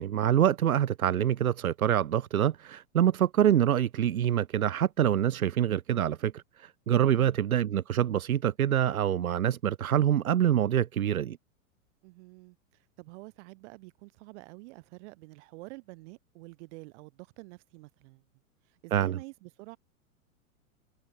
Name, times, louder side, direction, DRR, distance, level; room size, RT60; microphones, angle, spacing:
voice 1, 0.0-11.4 18.9-19.2, right 10 dB, 85° right, 1.2 m, -26 dB
voice 2, 12.0-18.2 18.6-19.8, right 24 dB, 55° right, 3.7 m, -48 dB
hypercardioid pair, 105°, 41 cm